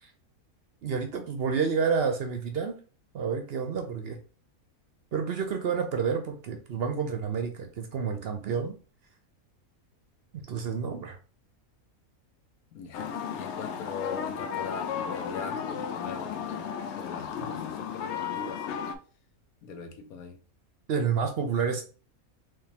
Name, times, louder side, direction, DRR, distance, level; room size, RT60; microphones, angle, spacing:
voice 1, 0.8-2.8 3.1-4.2 5.1-8.7 10.5-11.2 17.4-17.5 20.9-21.8, right 6 dB, 60° right, 5 dB, 0.7 m, -29 dB
voice 2, 12.7-18.9 19.6-20.4, left 6 dB, 80° left, 5 dB, 1.3 m, -41 dB
sound 1, 12.9-19.0, left 7 dB, 65° left, 0.7 m, -34 dB
3.6 x 3.2 x 2.9 m, 0.37 s
omnidirectional pair, 1.5 m